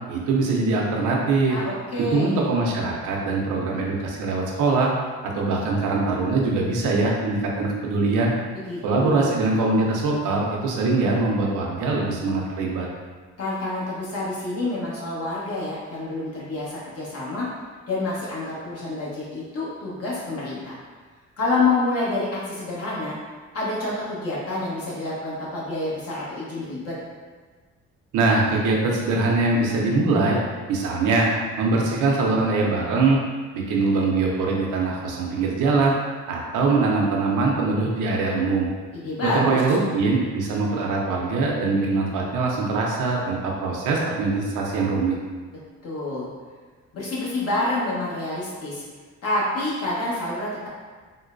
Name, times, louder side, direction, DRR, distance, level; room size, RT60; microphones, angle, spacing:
voice 1, 0.1-1.6 2.1-4.9 5.2-8.3 8.8-12.9 28.1-30.4 30.7-31.3 31.6-33.2 33.5-35.9 36.3-38.7 39.3-45.2, right 3 dB, 90° right, -1 dB, 0.6 m, -22 dB
voice 2, 1.5-2.3 8.6-9.3 13.4-17.5 17.9-20.8 21.4-23.2 23.5-26.9 38.9-39.8 45.8-46.2 46.9-48.8 49.2-50.7, left 2 dB, 55° left, -7 dB, 1.2 m, -28 dB
3.7 x 2.2 x 2.5 m, 1.4 s
cardioid pair, 90°, 30 cm